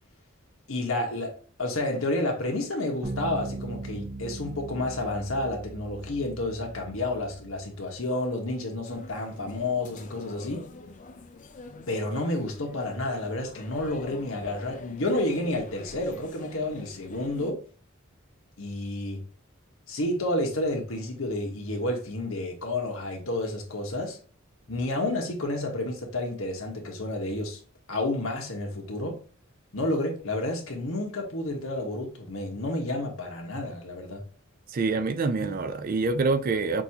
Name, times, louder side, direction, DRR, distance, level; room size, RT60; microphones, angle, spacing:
voice 1, 0.7-10.7 11.9-17.6 18.6-19.2 19.9-24.2 24.7-27.6 27.9-29.2 29.7-34.2, left 1 dB, 90° left, 1.3 m, -30 dB
sound 1, 3.0-7.8, right 2 dB, 80° right, 1.1 m, -39 dB
sound 2, 8.8-17.5, left 3 dB, 40° left, 0.4 m, -45 dB
voice 2, 34.7-36.8, right 3 dB, 45° right, 0.4 m, -26 dB
6.1 x 2.7 x 2.9 m
head